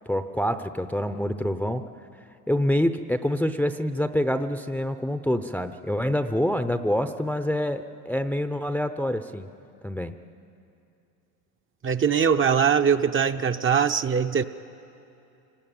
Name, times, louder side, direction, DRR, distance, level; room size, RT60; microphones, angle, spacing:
voice 1, 0.1-1.9 2.5-9.5 9.8-10.1, equal, 5° left, 9 dB, 0.7 m, -26 dB
voice 2, 11.8-14.4, right 7 dB, 25° right, 7 dB, 0.8 m, -22 dB
27.0 x 19.0 x 9.1 m, 2.7 s
supercardioid pair, 90°, 47 cm